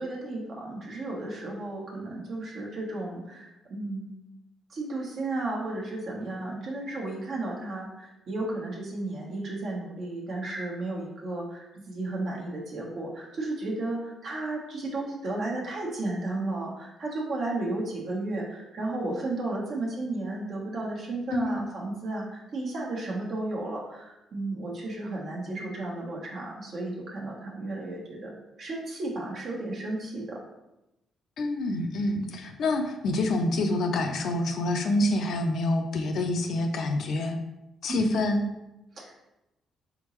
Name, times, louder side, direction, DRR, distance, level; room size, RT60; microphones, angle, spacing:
voice 1, 0.0-4.1 4.7-30.4 37.9-38.2 38.9-39.1, right 2 dB, 60° right, -3 dB, 1.2 m, -33 dB
voice 2, 21.3-21.6 31.4-37.4 37.8-38.4, left 2 dB, 65° left, 5 dB, 0.5 m, -27 dB
3.9 x 3.5 x 3.1 m, 0.93 s
cardioid pair, 90°, 0 cm